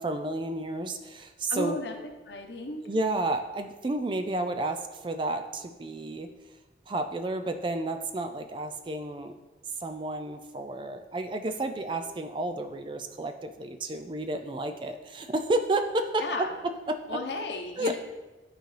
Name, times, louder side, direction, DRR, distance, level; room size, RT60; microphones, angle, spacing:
voice 1, 0.0-1.8 2.9-6.3 6.9-9.4 9.8-16.2 16.9-17.0 17.8-18.0, right 2 dB, 25° right, 7 dB, 0.4 m, -31 dB
voice 2, 1.5-1.9 2.3-2.8 16.2-16.5 17.1-18.0, left 2 dB, 75° left, 3 dB, 0.9 m, -34 dB
11.5 x 3.9 x 3.3 m, 1.2 s
head